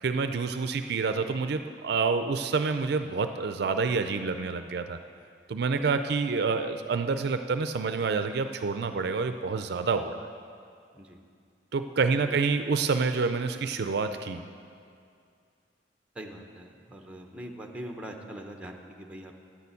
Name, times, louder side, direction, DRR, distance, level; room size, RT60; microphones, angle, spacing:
voice 1, 0.0-5.0 5.5-10.3 11.7-14.4, right 4 dB, 60° right, 9 dB, 0.4 m, -28 dB
voice 2, 12.0-12.4 16.1-19.4, equal, 5° right, 2 dB, 0.8 m, -43 dB
9.8 x 6.8 x 8.3 m, 2.3 s
head